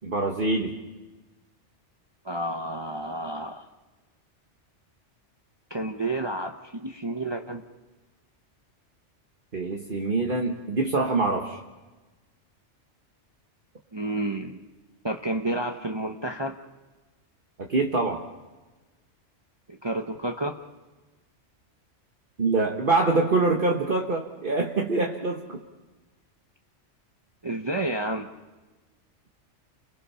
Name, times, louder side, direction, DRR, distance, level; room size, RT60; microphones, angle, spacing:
voice 1, 0.0-0.8 9.5-11.6 17.7-18.2 22.4-25.6, right 3 dB, 45° right, 1 dB, 1.5 m, -25 dB
voice 2, 2.2-3.6 5.7-7.6 13.9-14.6 15.0-16.5 19.7-20.6 27.4-28.3, right 1 dB, 25° right, 3 dB, 0.9 m, -30 dB
29.5 x 22.5 x 5.6 m, 1.2 s
omnidirectional pair, 1.2 m